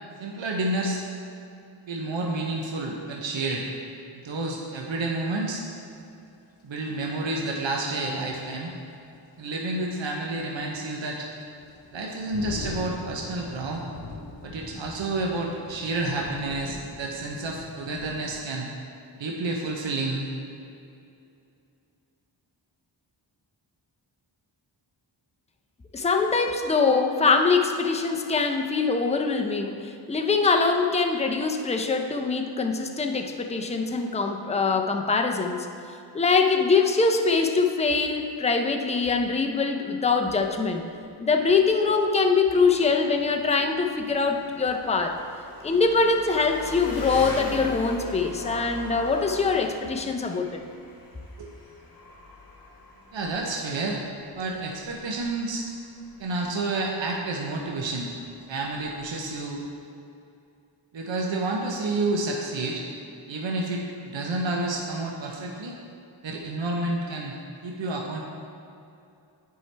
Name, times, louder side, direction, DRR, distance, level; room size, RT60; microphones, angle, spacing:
voice 1, 0.2-1.0 1.9-3.7 4.1-5.6 6.6-8.7 9.4-11.3 11.9-13.8 14.4-18.7 19.2-20.3 51.4-51.5 53.1-54.0 54.4-55.6 56.2-58.1 58.5-59.6 60.9-62.8 63.3-65.7 66.2-67.3 67.6-68.2, right 2 dB, 70° right, -1 dB, 0.8 m, -29 dB
sound 1, 5.4-5.5 7.9-8.0 8.5-8.6 10.1-18.4, left 2 dB, 75° left, 0.9 m, -41 dB
voice 2, 25.9-35.7 36.1-40.8 41.2-45.2 45.6-50.6, left 4 dB, 15° left, 4 dB, 0.4 m, -23 dB
Engine, 40.1-59.7, left 3 dB, 45° left, 1.0 m, -41 dB
9.5 x 4.6 x 3.3 m, 2.6 s
wide cardioid pair, 65°, 46 cm